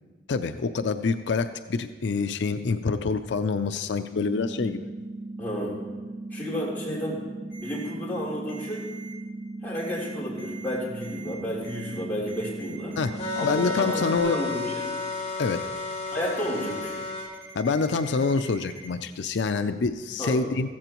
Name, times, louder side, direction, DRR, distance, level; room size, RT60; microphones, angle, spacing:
voice 1, 0.3-4.9 13.0-14.4 15.4-15.6 17.5-20.7, left 4 dB, 85° left, 9 dB, 0.5 m, -26 dB
sound 1, 4.2-14.2, right 2 dB, 15° right, 1.5 m, -38 dB
voice 2, 5.4-5.8 6.3-7.2 7.6-8.9 9.6-13.0 13.4-15.0 16.1-17.0 20.2-20.5, equal, 10° left, -8 dB, 3.6 m, -32 dB
Ringtone, 7.5-7.9 8.5-9.1 9.8-10.1 10.4-10.7 11.0-11.3 11.6-12.0 12.3-18.9, right 3 dB, 60° right, 2.0 m, -45 dB
sound 2, 13.2-17.3, left 4 dB, 35° left, 2.8 m, -32 dB
14.5 x 14.5 x 3.0 m, 1.3 s
head